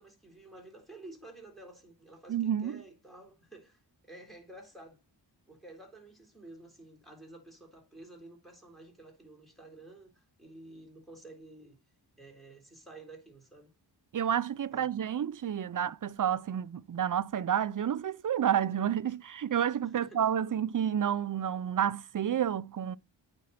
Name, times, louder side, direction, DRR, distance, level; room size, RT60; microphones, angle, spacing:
voice 1, 0.0-5.0 5.5-11.8 12.2-13.7 14.7-14.9 20.0-20.3, right 2 dB, ahead, 3.9 m, -51 dB
voice 2, 2.3-2.8 14.1-23.0, right 9 dB, 45° right, 0.5 m, -30 dB
9.1 x 5.2 x 4.1 m
cardioid pair, 60°, 44 cm